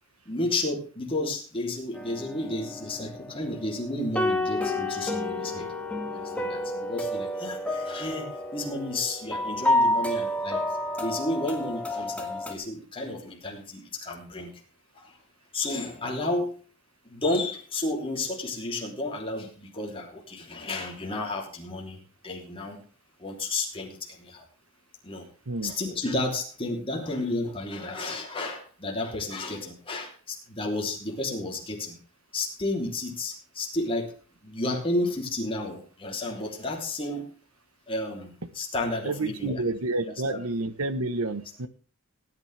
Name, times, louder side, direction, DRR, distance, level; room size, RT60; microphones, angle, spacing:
voice 1, 0.2-5.7 6.1-10.6 11.0-14.5 14.9-15.2 15.5-16.6 17.0-22.8 23.2-24.4 25.0-25.3 25.6-32.0 32.3-34.1 34.4-37.3 37.9-39.6 40.3-40.4, left 2 dB, 25° left, 0 dB, 3.1 m, -32 dB
sound 1, 1.9-12.5, left 1 dB, 5° left, 1.7 m, -30 dB
voice 2, 39.0-41.7, right 2 dB, 80° right, 13 dB, 1.1 m, -29 dB
18.5 x 9.2 x 3.4 m, 0.37 s
head